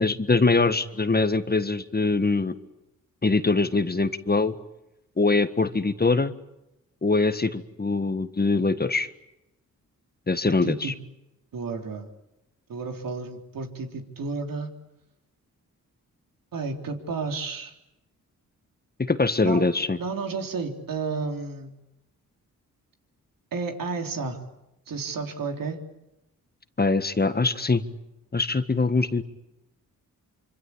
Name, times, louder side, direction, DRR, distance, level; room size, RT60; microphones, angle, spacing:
voice 1, 0.0-2.5 3.2-4.5 5.2-6.3 7.0-9.1 10.3-10.9 19.0-20.0 26.8-27.8 28.3-29.2, left 3 dB, 30° left, 11 dB, 1.6 m, -23 dB
voice 2, 10.4-10.9 11.5-12.1 12.7-14.7 16.5-17.7 19.4-19.7 20.0-21.7 23.5-24.4 24.9-25.8, right 4 dB, 75° right, 4 dB, 3.8 m, -32 dB
26.0 x 25.5 x 8.7 m, 0.91 s
cardioid pair, 65°, 34 cm